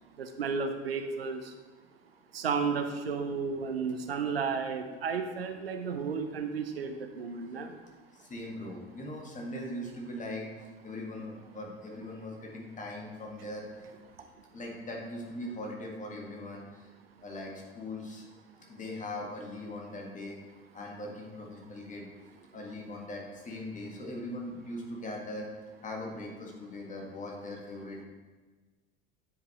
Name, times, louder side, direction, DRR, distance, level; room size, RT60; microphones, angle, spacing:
voice 1, 0.2-1.5 2.3-7.7, right 5 dB, 80° right, 6 dB, 0.6 m, -33 dB
voice 2, 8.2-10.5 10.8-13.7 14.5-16.9 17.2-18.2 18.7-20.4 20.7-22.0 22.5-25.5 25.8-28.1, left 1 dB, 25° left, -1 dB, 1.7 m, -40 dB
9.1 x 5.3 x 3.0 m, 1.3 s
figure-of-eight pair, 65°, 30 cm